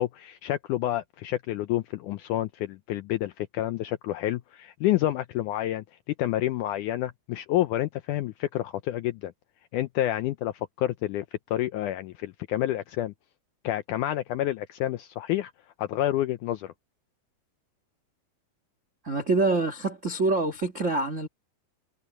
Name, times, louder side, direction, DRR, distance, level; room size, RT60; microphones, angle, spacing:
voice 1, 0.0-5.8 6.2-9.3 9.7-11.3 11.5-13.1 13.6-15.5 15.8-16.7, left 13 dB, 80° left, 1.8 m, -29 dB
voice 2, 19.0-21.3, right 3 dB, 55° right, 0.8 m, -25 dB
omnidirectional pair, 4.2 m